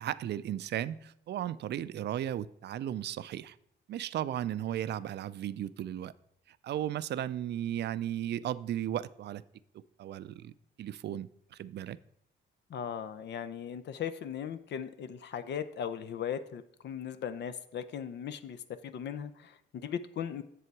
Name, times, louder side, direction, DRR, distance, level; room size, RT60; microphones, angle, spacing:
voice 1, 0.0-3.6 3.9-6.1 6.5-9.4 9.7-10.5 10.8-12.0, right 11 dB, 60° right, 16 dB, 0.4 m, -35 dB
voice 2, 12.7-20.4, left 8 dB, 60° left, 11 dB, 0.6 m, -38 dB
7.8 x 6.9 x 4.7 m, 0.72 s
cardioid pair, 90°, 20 cm